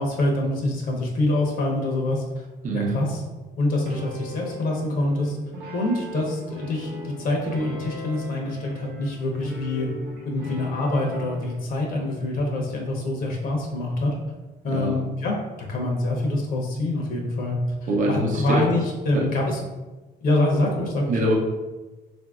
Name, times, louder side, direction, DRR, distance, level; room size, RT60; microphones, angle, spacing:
voice 1, 0.0-2.4 2.7-3.2 3.6-5.4 5.7-9.9 10.2-14.1 14.6-15.4 15.7-17.6 18.1-19.6 20.2-21.0, left 2 dB, 60° left, -1 dB, 0.8 m, -25 dB
voice 2, 2.6-3.0 14.7-15.0 17.9-18.7 19.1-19.2 21.1-21.3, right 1 dB, 50° right, -2 dB, 0.7 m, -23 dB
sound 1, 3.8-11.6, left 1 dB, 90° right, 0.9 m, -38 dB
3.8 x 2.5 x 2.4 m, 1.1 s
cardioid pair, 110°, 17 cm